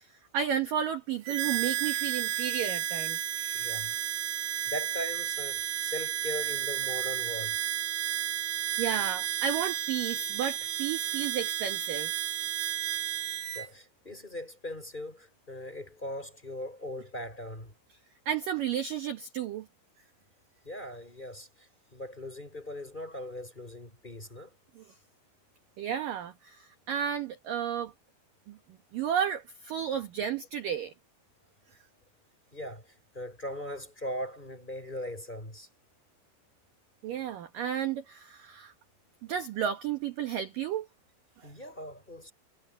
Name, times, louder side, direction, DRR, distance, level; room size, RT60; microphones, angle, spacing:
voice 1, 0.3-3.7 8.8-12.1 18.3-19.7 25.8-27.9 28.5-28.6 28.9-30.9 37.0-38.7 39.3-40.9, right 9 dB, 65° right, 2.3 m, -32 dB
Harmonica, 1.2-13.7, right 11 dB, 80° right, 4.6 m, -32 dB
voice 2, 3.5-3.9 4.6-7.6 13.5-17.7 20.6-24.6 32.5-35.7 41.4-42.3, left 1 dB, 10° left, 4.7 m, -40 dB
omnidirectional pair, 5.7 m